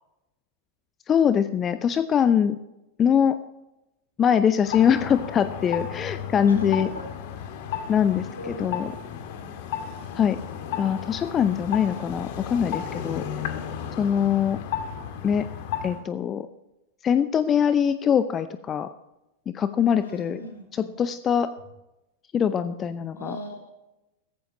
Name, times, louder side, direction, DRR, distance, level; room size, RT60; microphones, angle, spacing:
voice 1, 1.1-2.6 3.0-3.4 4.2-6.9 7.9-8.3 8.6-8.9 10.2-10.4 10.8-13.2 14.0-14.6 15.2-15.5 15.8-16.5 17.0-18.9 19.5-20.4 21.0-21.5 22.3-23.4, left 8 dB, 25° left, 12 dB, 0.6 m, -22 dB
sound 1, 4.6-16.0, left 8 dB, 50° left, 1.9 m, -34 dB
voice 2, 4.8-5.2 6.5-7.1 8.0-9.4 10.0-10.3 20.0-20.9 23.2-23.7, left 1 dB, 70° left, 2 dB, 4.4 m, -40 dB
16.0 x 15.0 x 3.0 m, 0.94 s
figure-of-eight pair, 90°, 0 cm